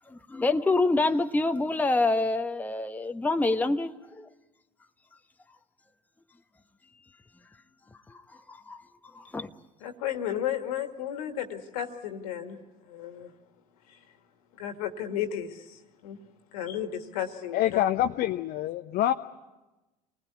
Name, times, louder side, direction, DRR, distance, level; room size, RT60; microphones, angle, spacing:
voice 1, 0.1-4.3 8.1-8.2 8.5-8.8 9.1-9.5, left 2 dB, 10° left, 6 dB, 1.1 m, -26 dB
voice 2, 9.8-12.6 12.9-13.3 14.6-15.5 16.0-16.2 16.5-17.8, left 10 dB, 65° left, 7 dB, 2.2 m, -33 dB
voice 3, 17.5-19.1, left 12 dB, 50° left, 6 dB, 0.9 m, -26 dB
27.5 x 19.5 x 9.8 m, 1.1 s
figure-of-eight pair, 70°, 20 cm